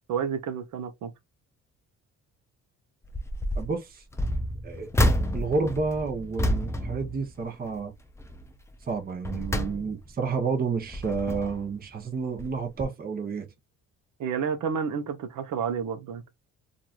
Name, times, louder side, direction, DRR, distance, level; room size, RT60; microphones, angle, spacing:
voice 1, 0.1-1.1 14.2-16.2, right 7 dB, 75° right, 0.8 m, -30 dB
sound 1, 3.0-3.7 4.1-7.8 8.2-8.5 9.0-10.3 10.8-11.7 12.4-12.5 12.8-12.9, equal, 10° left, 0.4 m, -29 dB
voice 2, 3.6-4.0 4.6-4.9 5.3-7.9 8.9-13.5, right 4 dB, 30° right, 0.8 m, -30 dB
3.1 x 2.6 x 2.3 m
cardioid pair, 90°, 30 cm